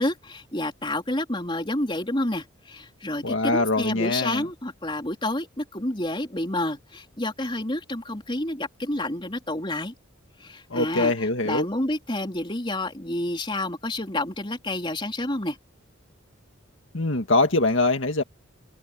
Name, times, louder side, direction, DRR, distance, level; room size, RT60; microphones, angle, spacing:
voice 1, 0.0-9.9 10.4-11.1 11.5-15.6, left 1 dB, 25° left, 3.7 m, -29 dB
voice 2, 3.2-4.5 10.7-11.7 16.9-18.2, left 2 dB, 70° left, 1.9 m, -23 dB
head